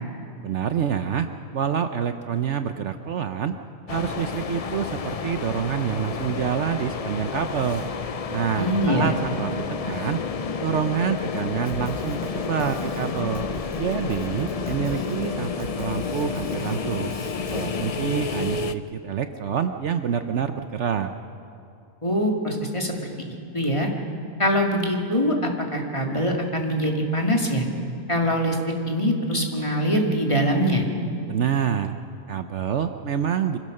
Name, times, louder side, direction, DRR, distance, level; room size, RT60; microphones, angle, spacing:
voice 1, 0.4-1.3 1.5-3.5 3.9-7.8 8.3-10.2 10.6-13.4 13.8-17.1 17.5-21.1 31.3-31.9 32.3-33.6, right 8 dB, 60° right, 8 dB, 1.0 m, -27 dB
sound 1, 3.9-18.7, left 5 dB, 50° left, 0.4 m, -30 dB
voice 2, 8.5-9.1 22.0-23.1 23.5-23.9 24.4-27.6 28.1-30.8, equal, 20° left, 1 dB, 2.2 m, -23 dB
Drum kit, 11.6-17.6, right 1 dB, 5° left, 3.6 m, -41 dB
25.0 x 16.5 x 6.5 m, 2.7 s
omnidirectional pair, 1.4 m